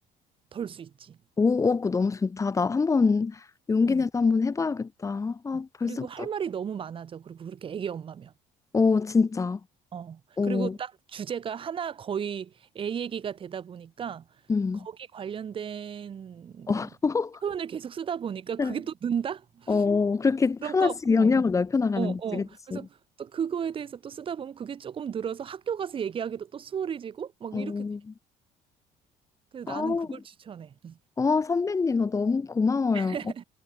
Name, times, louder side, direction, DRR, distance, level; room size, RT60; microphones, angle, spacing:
voice 1, 0.5-1.2 3.9-4.0 5.5-8.3 9.9-14.3 14.8-16.8 17.4-19.8 20.6-21.3 22.0-22.9 23.2-27.9 29.5-31.0 32.9-33.4, right 8 dB, 35° right, 3.2 m, -34 dB
voice 2, 1.4-3.4 3.7-6.3 8.7-9.6 10.4-10.8 14.5-14.9 16.7-17.4 18.6-18.7 19.7-22.4 22.7-22.8 27.5-28.0 29.7-30.2 31.2-33.2, left 4 dB, 20° left, 3.2 m, -25 dB
cardioid pair, 135°, 15 cm